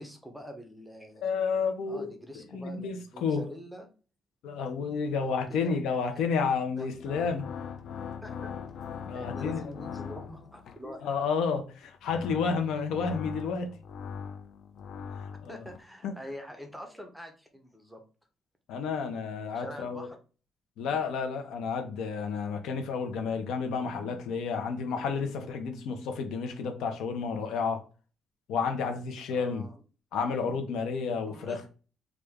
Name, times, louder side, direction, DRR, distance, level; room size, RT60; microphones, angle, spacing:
voice 1, 0.0-1.3 1.9-3.9 5.1-6.2 6.8-6.9 8.2-8.7 9.1-11.1 15.5-18.0 19.5-20.2 29.3-29.7 31.3-31.6, equal, ahead, 0.5 m, -45 dB
voice 2, 1.2-2.1 2.3-3.5 4.4-7.5 9.0-9.7 11.0-13.7 15.2-15.6 16.0-16.1 18.7-20.1 20.8-27.8 28.5-29.6 30.1-31.6, left 5 dB, 90° left, 0.7 m, -31 dB
sound 1, 6.8-10.9 11.8-15.8, left 7 dB, 55° left, 0.4 m, -41 dB
3.3 x 2.5 x 3.5 m
cardioid pair, 180°, 0 cm